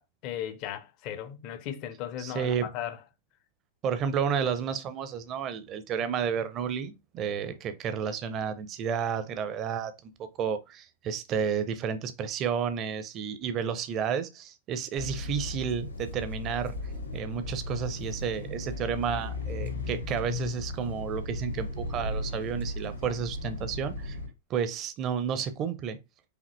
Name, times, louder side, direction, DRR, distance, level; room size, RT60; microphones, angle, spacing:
voice 1, 0.0-3.0, left 10 dB, 45° left, 0.6 m, -37 dB
voice 2, 2.2-2.7 3.8-16.7 17.1-24.2 24.5-26.0, right 7 dB, 35° right, 0.6 m, -31 dB
sound 1, 15.0-24.3, left 2 dB, 75° left, 1.3 m, -36 dB
4.9 x 2.7 x 3.2 m
figure-of-eight pair, 90°, 0 cm